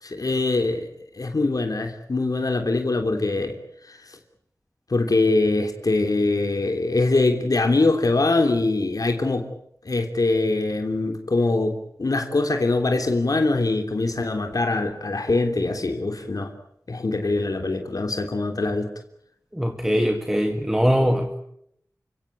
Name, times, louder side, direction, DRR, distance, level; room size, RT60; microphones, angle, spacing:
voice 1, 0.0-3.6 3.8-4.2 4.9-9.5 9.8-16.5 16.9-18.9, left 2 dB, 65° left, 4 dB, 3.3 m, -23 dB
voice 2, 19.5-21.4, equal, 5° right, 5 dB, 2.3 m, -21 dB
29.5 x 17.5 x 9.3 m, 0.74 s
wide cardioid pair, 60°, 7 cm